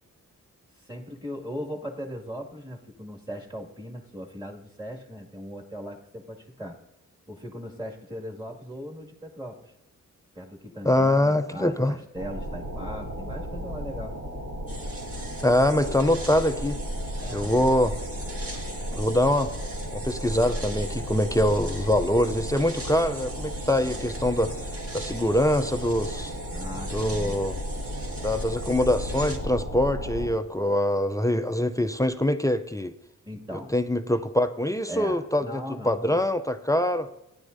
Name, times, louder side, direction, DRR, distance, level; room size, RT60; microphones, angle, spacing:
voice 1, 0.8-6.8 7.3-9.7 10.3-14.1 17.2-17.7 26.5-27.4 33.2-33.7 34.9-36.2, equal, 15° right, 0 dB, 2.2 m, -39 dB
voice 2, 10.8-12.0 15.4-16.8 17.3-18.0 18.9-19.5 19.9-24.5 24.9-26.3 26.9-27.6 28.2-32.9 33.7-35.6 35.8-37.1, left 1 dB, 10° left, 9 dB, 0.5 m, -24 dB
sound 1, 12.1-30.3, equal, 80° right, 3.1 m, -34 dB
sound 2, 14.7-29.4, right 2 dB, 45° right, 2.0 m, -42 dB
16.0 x 10.5 x 2.7 m, 0.86 s
cardioid pair, 60°, 32 cm